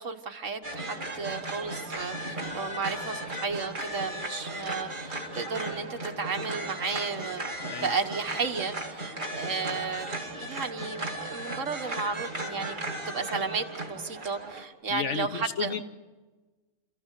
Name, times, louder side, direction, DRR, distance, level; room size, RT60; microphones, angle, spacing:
voice 1, 0.0-7.5 7.8-12.8 13.1-15.7, right 5 dB, 70° right, 4 dB, 1.8 m, -33 dB
sound 1, 0.6-14.6, right 1 dB, 35° right, 2.5 m, -36 dB
voice 2, 14.9-15.8, left 7 dB, 65° left, 10 dB, 1.3 m, -33 dB
29.0 x 15.0 x 8.2 m, 1.3 s
omnidirectional pair, 1.4 m